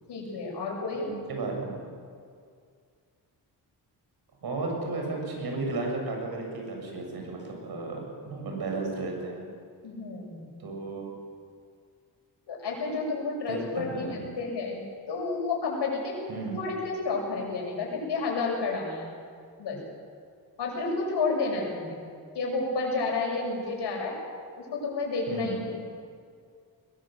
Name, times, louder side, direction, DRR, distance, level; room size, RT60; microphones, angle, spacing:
voice 1, 0.1-1.1 9.8-10.5 12.5-16.2 16.5-19.2 19.6-19.8 20.6-22.0 22.3-24.2 24.6-25.7, left 3 dB, 85° left, -1 dB, 7.1 m, -31 dB
voice 2, 1.3-1.8 4.4-9.5 10.6-11.2 13.5-14.3 16.3-16.6 25.3-25.6, right 3 dB, 65° right, 1 dB, 7.2 m, -34 dB
21.5 x 20.5 x 7.8 m, 2.2 s
cardioid pair, 110°, 40 cm